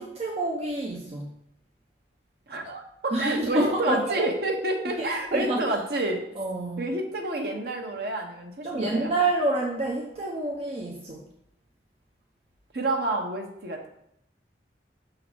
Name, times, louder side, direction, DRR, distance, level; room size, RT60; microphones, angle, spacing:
voice 1, 0.0-1.4 3.1-4.3 4.8-5.6 6.3-6.8 8.6-11.2, right 2 dB, 35° right, -2 dB, 0.9 m, -28 dB
voice 2, 2.5-6.2 6.8-9.1 12.7-13.9, right 2 dB, 60° right, 2 dB, 1.2 m, -29 dB
6.6 x 3.9 x 6.2 m, 0.74 s
head